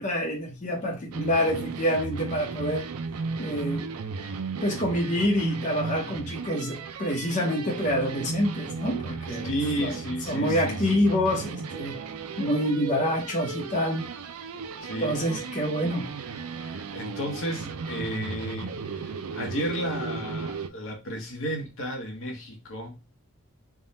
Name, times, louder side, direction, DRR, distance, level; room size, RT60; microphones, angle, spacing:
voice 1, 0.0-2.9 3.4-3.9 4.6-9.5 9.8-10.0 10.3-12.0 12.4-14.1 15.0-16.1, equal, 35° left, 0.9 m, -27 dB
sound 1, 1.1-20.7, right 4 dB, 80° right, 0.5 m, -35 dB
voice 2, 9.4-10.8 14.8-15.5 16.6-23.0, equal, 65° left, 1.0 m, -33 dB
3.6 x 2.3 x 4.1 m
head